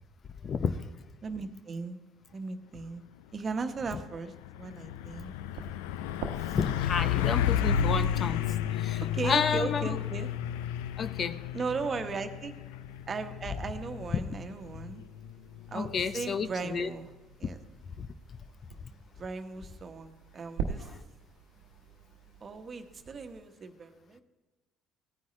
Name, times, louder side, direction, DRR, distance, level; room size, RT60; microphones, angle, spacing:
voice 1, 0.4-0.9 6.5-8.4 8.7-9.8 11.0-11.4 15.7-16.9 18.0-18.1, left 6 dB, 45° left, 12 dB, 0.7 m, -31 dB
voice 2, 1.2-2.0 2.3-3.0 3.3-5.3 9.1-10.3 11.5-12.6 13.1-15.0 15.7-17.1 17.4-17.6 19.2-20.9 22.4-24.2, right 4 dB, 40° right, 7 dB, 1.2 m, -37 dB
Truck, 3.4-3.6 4.0-16.5, left 9 dB, 85° left, 0.4 m, -32 dB
sound 1, 5.1-23.4, right 6 dB, 80° right, 1.0 m, -46 dB
17.0 x 9.4 x 3.2 m, 1.2 s
hypercardioid pair, 65°, 0 cm